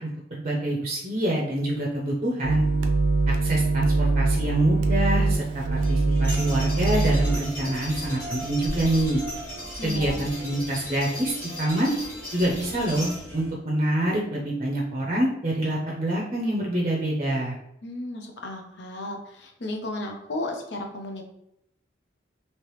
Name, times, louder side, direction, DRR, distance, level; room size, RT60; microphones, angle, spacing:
voice 1, 0.0-2.6 3.3-9.2 9.8-11.9 12.3-17.6, right 1 dB, 30° right, -2 dB, 0.5 m, -26 dB
sound 1, 2.4-7.4, right 3 dB, 75° right, 0.5 m, -23 dB
sound 2, 5.7-13.5, equal, 10° left, 1.3 m, -36 dB
voice 2, 9.8-10.3 17.8-21.2, left 1 dB, 65° left, 2 dB, 0.6 m, -34 dB
3.2 x 2.9 x 3.0 m, 0.78 s
head